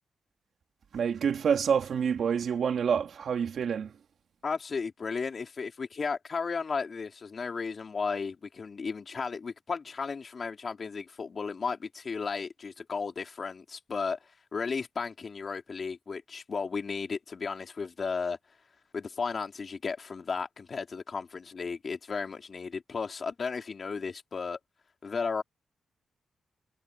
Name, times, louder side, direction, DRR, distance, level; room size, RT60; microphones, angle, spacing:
voice 1, 0.9-4.0, right 7 dB, 70° right, 2.6 m, -27 dB
voice 2, 4.4-14.2 14.5-18.4 18.9-24.6 25.0-25.4, left 5 dB, 45° left, 3.4 m, -34 dB
cardioid pair, 100°, 0 cm